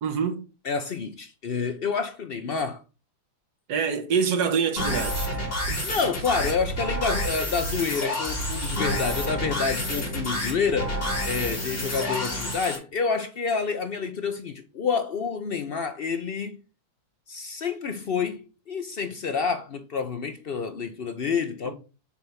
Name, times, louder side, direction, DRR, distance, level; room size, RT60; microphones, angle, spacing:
voice 1, 0.0-0.5 3.7-5.3 5.7-5.8 21.6-21.7, right 6 dB, 85° right, 1.6 m, -26 dB
voice 2, 0.6-2.8 5.8-11.0 11.2-16.6 17.3-21.7, left 5 dB, 60° left, 0.6 m, -28 dB
sound 1, 4.8-12.8, equal, 35° left, 2.7 m, -29 dB
7.2 x 3.4 x 5.6 m
omnidirectional pair, 1.7 m